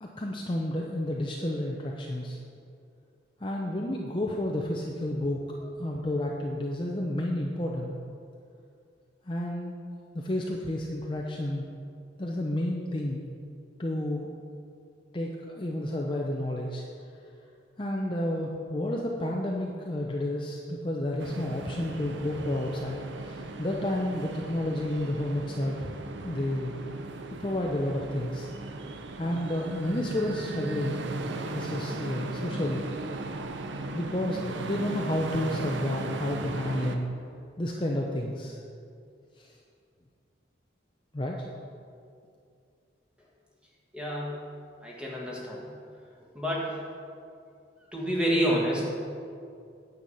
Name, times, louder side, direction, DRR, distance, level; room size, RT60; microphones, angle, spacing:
voice 1, 0.0-2.4 3.4-7.9 9.3-9.7 10.1-11.6 12.2-13.2 13.8-14.3 15.1-16.8 17.8-25.9 26.2-26.7 27.4-28.5 29.2-31.0 31.5-32.8 33.9-37.1 37.6-38.6 39.4-39.6 41.1-41.5, left 1 dB, 25° left, -1 dB, 0.6 m, -31 dB
sound 1, 21.2-37.0, right 2 dB, 75° right, 0.7 m, -37 dB
voice 2, 43.9-44.4 44.8-45.7 46.4-46.8 47.9-48.8, equal, 5° right, -3 dB, 1.6 m, -28 dB
9.2 x 8.1 x 5.5 m, 2.4 s
head